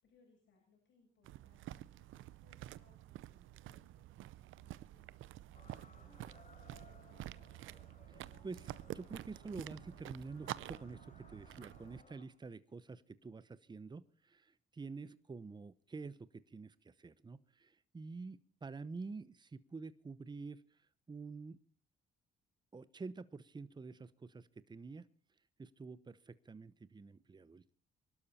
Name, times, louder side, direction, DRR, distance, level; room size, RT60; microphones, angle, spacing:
voice 1, 0.0-7.1, left 4 dB, 70° left, 0 dB, 7.8 m, -72 dB
sound 1, 1.2-12.0, right 14 dB, 80° right, 0.6 m, -49 dB
sound 2, 5.5-12.3, left 4 dB, 40° left, 4.0 m, -63 dB
voice 2, 8.1-20.8 21.1-21.6 22.7-25.1 25.6-27.7, right 4 dB, 20° right, 16 dB, 0.9 m, -48 dB
23.0 x 12.5 x 4.3 m, 0.40 s
cardioid pair, 90°, 20 cm